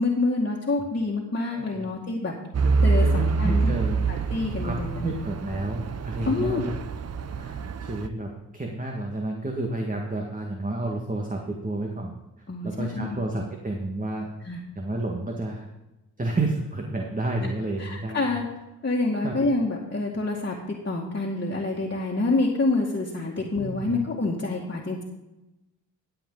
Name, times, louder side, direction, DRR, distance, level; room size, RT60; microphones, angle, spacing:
voice 1, 0.0-2.3 2.8-3.7 4.1-5.1 6.2-6.6 12.5-13.2 14.4-14.6 17.8-18.4 18.8-20.6 20.8-25.0, left 3 dB, 30° left, -3 dB, 2.2 m, -27 dB
voice 2, 1.5-1.9 2.6-2.7 3.0-4.0 4.6-6.7 7.3-12.1 12.6-14.3 14.8-15.7 16.2-18.2 19.2-19.4 23.6-24.0, right 2 dB, 20° right, 0 dB, 1.9 m, -30 dB
Truck / Idling, 2.5-8.1, right 4 dB, 40° right, 0.7 m, -26 dB
18.0 x 7.7 x 4.0 m, 0.99 s
cardioid pair, 60°, 38 cm